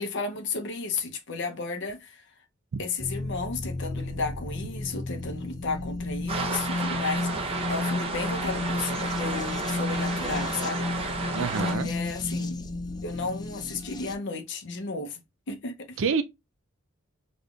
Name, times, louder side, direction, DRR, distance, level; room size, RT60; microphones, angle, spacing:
voice 1, 0.0-2.2 2.8-12.6 13.0-15.2 15.5-16.0, left 4 dB, 60° left, 0.7 m, -34 dB
sound 1, 3.0-14.1, left 2 dB, 20° left, 0.3 m, -33 dB
sound 2, 6.3-11.7, right 3 dB, 30° right, 0.6 m, -32 dB
voice 2, 11.3-11.9 16.0-16.2, right 5 dB, 65° right, 0.4 m, -27 dB
5.1 x 2.4 x 2.3 m
head